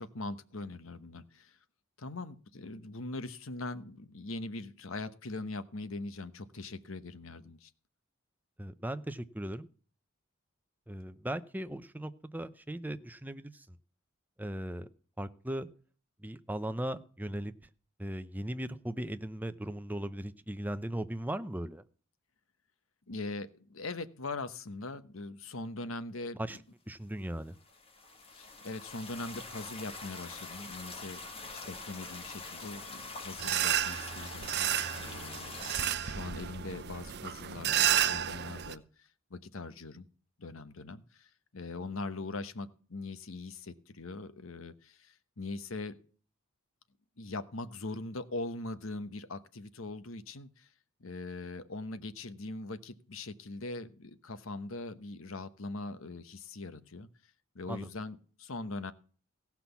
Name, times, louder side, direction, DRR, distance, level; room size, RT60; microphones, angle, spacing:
voice 1, 0.0-1.6 2.0-7.7 23.1-26.6 28.3-40.1 40.4-46.0 47.2-50.7 51.0-57.1 57.5-58.9, left 2 dB, 65° left, 12 dB, 1.0 m, -41 dB
voice 2, 8.6-9.7 10.9-13.8 14.4-14.9 15.2-15.7 16.2-17.5 18.0-21.8 26.4-26.6 26.9-27.6 57.7-57.9, right 1 dB, 10° right, 11 dB, 0.6 m, -38 dB
sound 1, 27.6-35.9, left 3 dB, 25° left, 1.9 m, -44 dB
sound 2, 33.4-38.7, right 10 dB, 50° right, 0.7 m, -31 dB
16.5 x 6.0 x 7.0 m, 0.42 s
head